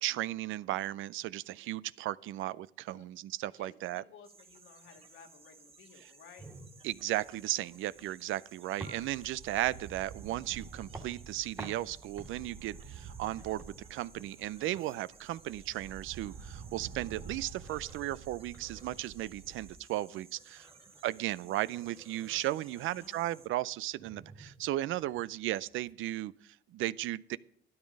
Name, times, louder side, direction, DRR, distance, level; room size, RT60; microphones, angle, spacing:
voice 1, 0.0-4.0 6.8-20.7 21.0-27.4, right 15 dB, 85° right, 0.5 m, -35 dB
voice 2, 3.5-6.5 22.7-23.4, left 6 dB, 85° left, 1.7 m, -57 dB
sound 1, 4.2-23.5, right 4 dB, 30° right, 1.1 m, -59 dB
sound 2, 6.4-25.9, right 2 dB, 15° right, 1.8 m, -52 dB
sound 3, 6.9-7.6 8.0-8.1 8.9-14.7 15.1-19.8, right 6 dB, 60° right, 1.3 m, -49 dB
12.5 x 10.5 x 5.3 m
cardioid pair, 90°, 20 cm